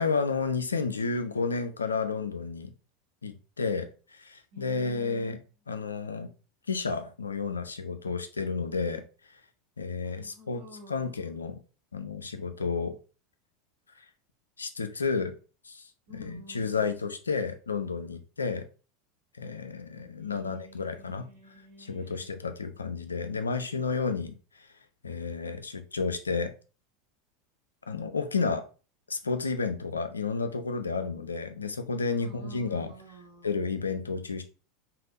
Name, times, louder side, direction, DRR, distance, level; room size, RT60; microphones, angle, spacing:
voice 1, 0.0-2.7 3.2-5.4 5.7-6.3 6.7-9.0 9.8-10.6 10.9-11.6 11.9-13.0 14.6-15.3 15.6-15.8 16.1-18.7 19.4-21.3 21.8-24.7 25.0-26.5 27.9-28.7 29.1-32.9 33.4-34.4, left 4 dB, 85° left, 0.3 m, -31 dB
voice 2, 4.5-5.3 10.0-11.2 16.1-16.9 20.2-22.3 32.1-33.5, left 1 dB, 70° right, 1.5 m, -50 dB
3.3 x 2.4 x 2.4 m
figure-of-eight pair, 80°, 0 cm